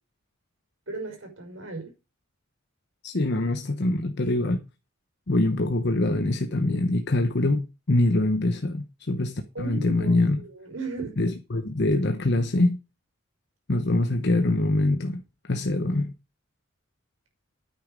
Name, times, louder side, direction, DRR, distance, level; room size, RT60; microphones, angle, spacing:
voice 1, 0.9-1.9 9.5-11.1, right 3 dB, 65° right, 5.7 m, -36 dB
voice 2, 3.0-4.6 5.3-10.4 11.2-12.8 13.7-16.1, left 2 dB, 55° left, 1.0 m, -24 dB
9.6 x 8.2 x 5.1 m
head